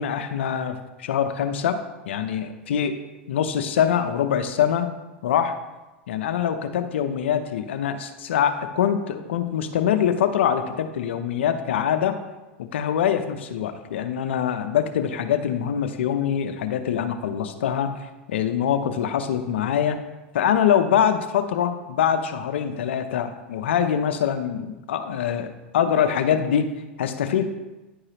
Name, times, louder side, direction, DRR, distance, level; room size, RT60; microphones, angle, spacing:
voice 1, 0.0-1.8 2.1-3.0 3.3-4.9 5.2-5.6 6.1-12.2 12.7-17.9 18.3-20.0 20.3-26.7 27.0-27.5, left 9 dB, 85° left, 9 dB, 0.7 m, -24 dB
9.9 x 4.8 x 2.9 m, 1.1 s
hypercardioid pair, 110°, 6 cm